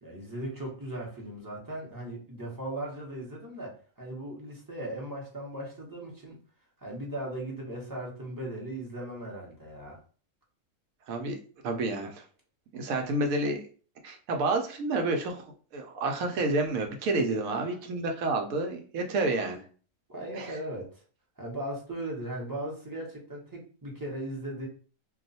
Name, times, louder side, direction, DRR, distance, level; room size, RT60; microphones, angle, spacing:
voice 1, 0.0-6.4 6.8-10.0 17.3-18.2 20.1-21.0 21.4-24.7, right 1 dB, 20° right, -3 dB, 0.7 m, -38 dB
voice 2, 11.1-11.4 11.6-12.2 12.7-13.6 14.0-15.5 15.7-19.6 20.4-20.6, right 2 dB, 75° right, 4 dB, 1.0 m, -29 dB
2.4 x 2.3 x 3.9 m, 0.40 s
omnidirectional pair, 1.5 m